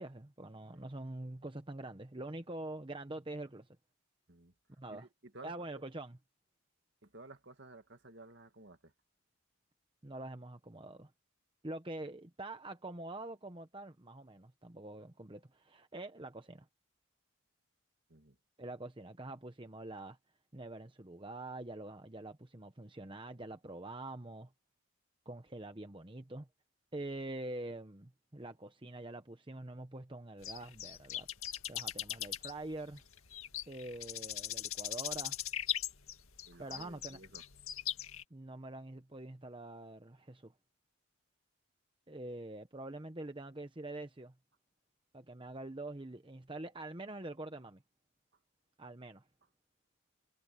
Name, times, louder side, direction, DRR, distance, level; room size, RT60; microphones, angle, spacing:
voice 1, 0.0-3.7 4.8-5.1 5.4-6.2 10.0-11.1 11.6-16.7 18.6-20.2 20.5-24.5 25.2-26.5 26.9-33.0 33.7-35.4 36.6-37.2 38.3-40.5 42.1-44.3 45.1-47.8 48.8-49.3, right 2 dB, 25° right, 1.0 m, -45 dB
voice 2, 4.9-5.8 7.0-8.9 18.1-18.4 36.4-37.4, right 2 dB, 55° right, 1.9 m, -54 dB
sound 1, 30.4-38.2, left 12 dB, 75° left, 2.0 m, -40 dB
head